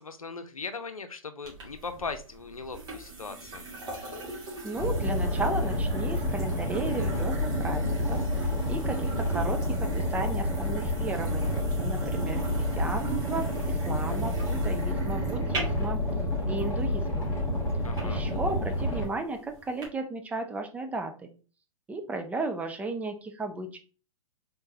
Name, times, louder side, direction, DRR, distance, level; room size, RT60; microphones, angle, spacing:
voice 1, 0.0-3.6 17.8-18.2, left 4 dB, 90° left, 9 dB, 0.6 m, -39 dB
sound 1, 1.4-19.9, right 4 dB, 25° right, 1.6 m, -40 dB
voice 2, 4.6-16.0 16.4-17.3 18.0-21.3 21.9-23.8, right 2 dB, 10° right, 5 dB, 0.4 m, -35 dB
Boat Water vehicle, 4.8-19.0, left 1 dB, 15° left, 1.6 m, -29 dB
3.8 x 3.7 x 2.7 m, 0.36 s
figure-of-eight pair, 115°, 17 cm